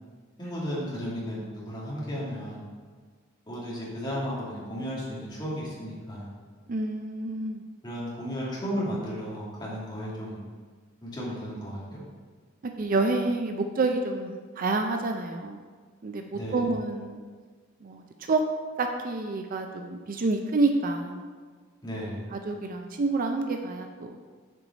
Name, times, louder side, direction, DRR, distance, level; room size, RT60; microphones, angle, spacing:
voice 1, 0.4-2.6 3.5-6.3 7.8-10.4 11.0-12.0 16.3-16.7 21.8-22.3, equal, 20° left, -7 dB, 2.0 m, -34 dB
voice 2, 6.7-7.6 12.8-15.6 16.0-17.2 17.8-18.4 18.8-21.3 22.3-24.2, right 3 dB, 45° right, 4 dB, 0.4 m, -28 dB
6.6 x 4.7 x 4.0 m, 1.5 s
head